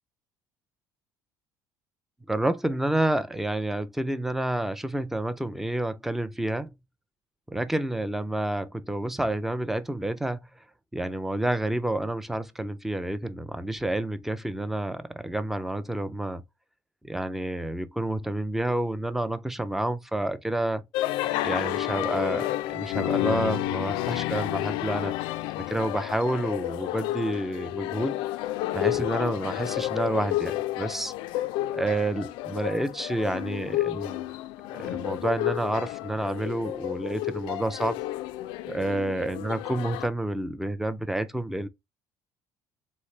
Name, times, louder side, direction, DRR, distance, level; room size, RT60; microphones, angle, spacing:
voice 1, 2.3-6.7 7.5-10.5 10.9-16.4 17.0-20.8 21.4-25.1 25.6-28.2 28.7-31.1 31.7-34.2 34.7-38.0 38.7-41.7, right 1 dB, 5° right, 0.4 m, -29 dB
sound 1, 20.9-40.1, left 15 dB, 90° left, 0.4 m, -31 dB
3.9 x 3.2 x 3.8 m
cardioid pair, 145°, 8 cm